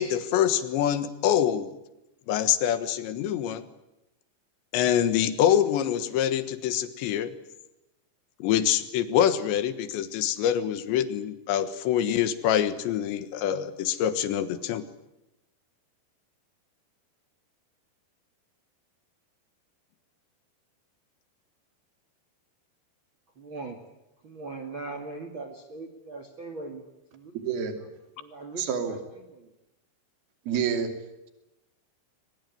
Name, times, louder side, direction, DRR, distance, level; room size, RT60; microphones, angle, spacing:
voice 1, 0.0-1.7 2.3-3.6 4.7-7.3 8.4-14.8, left 10 dB, 80° left, 12 dB, 3.6 m, -25 dB
voice 2, 23.4-23.8 24.2-26.8 27.1-27.3 28.2-29.0 29.4-29.5, right 3 dB, 40° right, 7 dB, 1.9 m, -39 dB
voice 3, 27.3-27.7 28.6-29.0 30.5-30.9, right 7 dB, 60° right, 7 dB, 4.4 m, -28 dB
23.0 x 20.0 x 9.5 m, 0.95 s
omnidirectional pair, 5.3 m